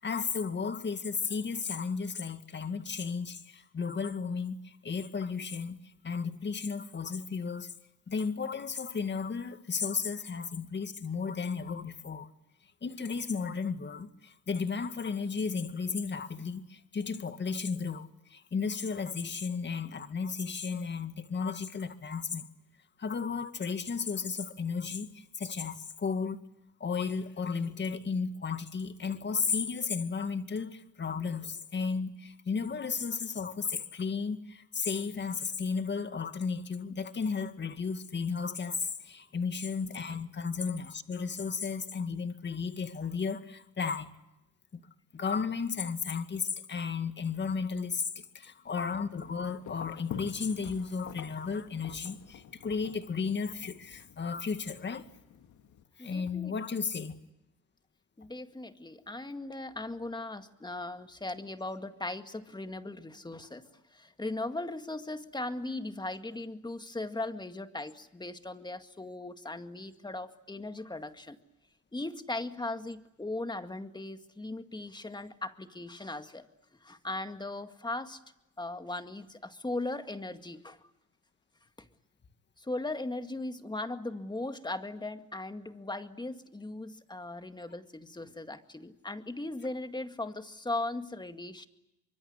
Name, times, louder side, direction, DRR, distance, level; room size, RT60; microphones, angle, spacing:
voice 1, 0.0-5.8 6.0-7.7 8.1-12.3 12.8-22.5 23.0-26.4 26.8-44.1 44.7-44.8 45.1-48.1 48.3-55.1 56.0-57.2, left 5 dB, 35° left, 2.1 m, -34 dB
sound 1, 48.6-55.8, left 8 dB, 75° left, 2.4 m, -48 dB
voice 2, 56.0-56.5 58.2-71.4 71.9-76.5 76.8-78.2 78.6-80.8 81.8-81.9 82.6-91.7, left 2 dB, 15° left, 2.0 m, -38 dB
24.5 x 23.5 x 9.8 m
cardioid pair, 90°, 30 cm